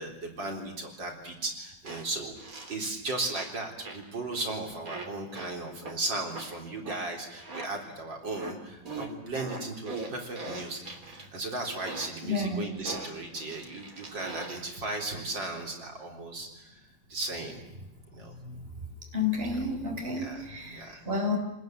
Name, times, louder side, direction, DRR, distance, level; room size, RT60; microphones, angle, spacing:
voice 1, 0.0-17.6 18.1-18.3 20.1-20.4 20.7-21.0, right 2 dB, 85° right, 1 dB, 4.4 m, -36 dB
sound 1, 1.8-2.0 2.4-2.8 3.3-3.6 3.8-4.1 4.8-5.1 5.3-5.5 5.8-5.9 6.3-6.5 6.8-7.1 7.4-7.7 8.4-8.5 8.8-11.3 11.8-12.1 12.8-14.7, right 3 dB, 50° right, 3.6 m, -40 dB
voice 2, 12.2-12.6 18.4-18.6 19.1-21.4, left 3 dB, 30° right, 1 dB, 5.7 m, -31 dB
29.0 x 20.0 x 9.3 m, 0.98 s
omnidirectional pair, 1.9 m